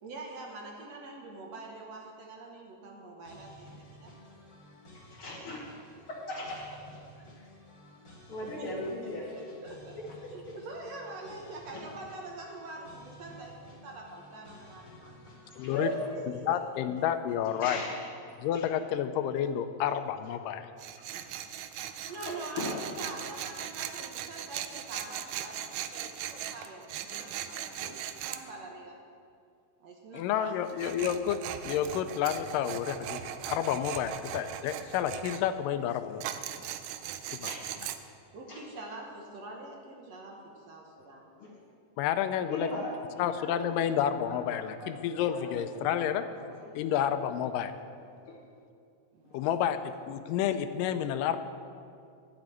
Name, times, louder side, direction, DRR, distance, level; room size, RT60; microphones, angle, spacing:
voice 1, 0.0-3.7 4.0-4.1 8.4-8.7 9.2-9.3 9.6-10.0 10.3-15.2 15.7-16.0 22.0-29.0 29.8-30.6 38.3-41.3 49.1-49.5, right 2 dB, 60° right, 0 dB, 1.9 m, -45 dB
sound 1, 3.2-16.0, left 1 dB, 20° left, 2.2 m, -53 dB
voice 2, 4.9-5.7 6.1-7.5 8.0-9.4 10.2-10.5 11.7-11.8 15.5-16.5 17.6-18.1 18.5-18.7 21.0-21.3 21.9-23.0 27.1-27.5 27.8-28.0 37.4-37.7 38.5-38.6 41.4-41.7 42.5-47.2 48.3-48.4, left 1 dB, 55° left, -3 dB, 1.6 m, -40 dB
voice 3, 15.6-15.9 16.5-17.8 18.4-20.7 30.1-33.2 33.5-36.3 37.3-37.5 42.0-42.7 43.2-46.2 46.8-47.7 49.3-51.4, left 9 dB, 85° left, 10 dB, 2.2 m, -30 dB
Tools, 20.8-28.4 30.7-35.4 36.2-38.0, right 10 dB, 85° right, 2.2 m, -39 dB
11.5 x 6.0 x 8.9 m, 2.4 s
omnidirectional pair, 3.8 m